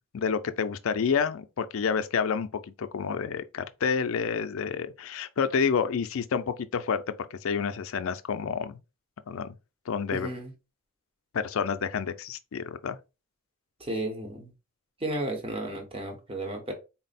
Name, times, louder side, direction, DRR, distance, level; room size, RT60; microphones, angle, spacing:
voice 1, 0.1-8.8 9.3-9.5 9.9-10.3 11.3-13.0, left 6 dB, 65° left, 0.4 m, -29 dB
voice 2, 10.1-10.5 13.8-14.5 15.0-16.7, right 1 dB, 25° right, 0.9 m, -33 dB
4.2 x 2.0 x 4.0 m
head